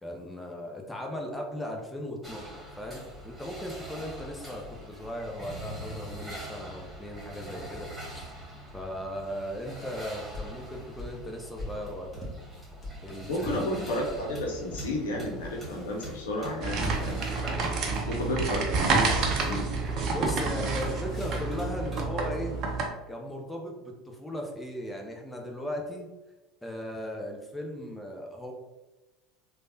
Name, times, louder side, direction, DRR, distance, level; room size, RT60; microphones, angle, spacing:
voice 1, 0.0-8.3 8.7-12.3 13.0-13.7 20.0-22.6 23.1-26.1 26.6-28.5, equal, 10° left, 1 dB, 0.6 m, -37 dB
sound 1, 2.2-22.0, right 1 dB, 15° right, 1.4 m, -43 dB
sound 2, 10.3-14.3 14.7-14.9 15.3-16.8 18.3-19.5 20.7-21.6, left 1 dB, 25° left, 1.1 m, -44 dB
voice 2, 13.3-17.6 18.1-19.9, left 1 dB, 80° left, 0 dB, 0.6 m, -32 dB
sound 3, 16.6-22.9, right 4 dB, 50° right, 0.6 m, -29 dB
3.2 x 2.2 x 2.7 m, 1.1 s
hypercardioid pair, 75°, 0 cm